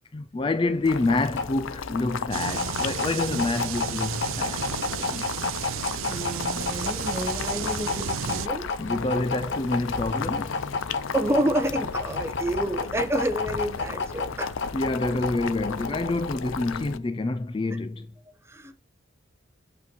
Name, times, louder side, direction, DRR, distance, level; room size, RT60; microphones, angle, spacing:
voice 1, 0.1-4.7 5.0-5.3 8.6-10.7 14.7-18.1, left 2 dB, 25° left, 0.3 m, -27 dB
sound 1, 0.6-16.6, left 4 dB, 60° left, 1.1 m, -32 dB
Boiling, 0.8-17.0, left 6 dB, 85° left, 0.6 m, -35 dB
sound 2, 2.3-8.5, right 9 dB, 80° right, 0.4 m, -33 dB
voice 2, 6.1-8.6 11.1-14.5 18.5-18.7, right 1 dB, 15° right, 0.9 m, -29 dB
8.4 x 4.4 x 4.4 m
head